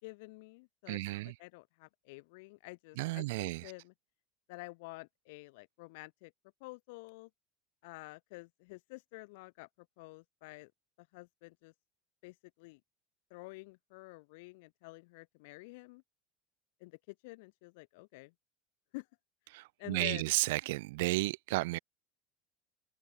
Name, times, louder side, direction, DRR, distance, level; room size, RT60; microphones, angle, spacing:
voice 1, 0.0-3.9 4.5-6.3 6.6-7.3 7.8-9.7 10.0-10.7 11.0-11.7 12.2-12.8 13.3-16.0 16.8-18.3 18.9-19.1 19.8-20.3, left 25 dB, 70° left, 4.1 m, -49 dB
voice 2, 0.9-1.3 3.0-3.7 19.5-21.8, right 21 dB, 80° right, 4.7 m, -33 dB
open air
cardioid pair, 180°, 0 cm